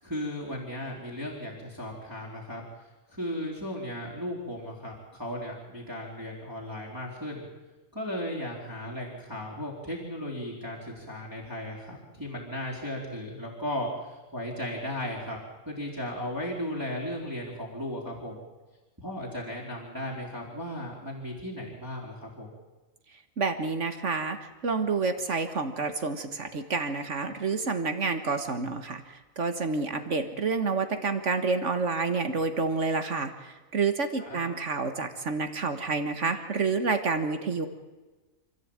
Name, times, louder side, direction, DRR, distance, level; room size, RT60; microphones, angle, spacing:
voice 1, 0.0-2.6 3.1-7.5 7.9-15.4 15.7-18.4 19.0-22.5 34.2-34.4, left 1 dB, 15° right, -5 dB, 3.9 m, -36 dB
voice 2, 23.4-29.0 29.4-37.7, right 4 dB, 60° right, 8 dB, 1.8 m, -29 dB
27.0 x 14.5 x 8.8 m, 1.2 s
omnidirectional pair, 1.4 m